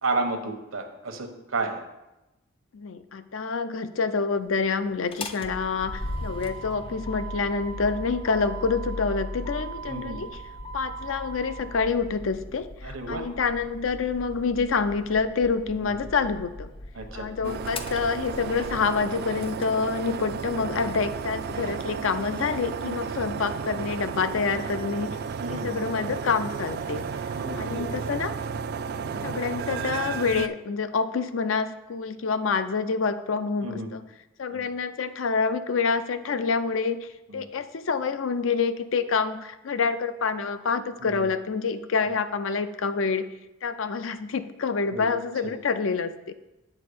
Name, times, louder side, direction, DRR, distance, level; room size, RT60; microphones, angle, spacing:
voice 1, 0.0-1.8 9.9-10.2 12.8-13.2 15.8-15.9 17.0-17.5 22.9-23.0 25.4-25.9 27.3-27.9 29.1-29.3 33.6-33.9 34.5-34.6 37.3-37.4 41.0-41.2 44.9-45.0 45.4-45.5, right 3 dB, 85° right, 5 dB, 1.1 m, -32 dB
voice 2, 2.7-10.4 10.7-16.7 17.1-25.2 25.5-27.0 27.6-28.3 29.2-34.1 34.4-43.3 43.6-46.3, left 5 dB, 75° left, 11 dB, 0.5 m, -27 dB
Motor vehicle (road), 4.9-19.6, equal, 25° left, 0.5 m, -38 dB
sound 1, 17.4-30.5, right 6 dB, 50° right, 0.3 m, -33 dB
8.3 x 4.2 x 6.9 m, 0.98 s
head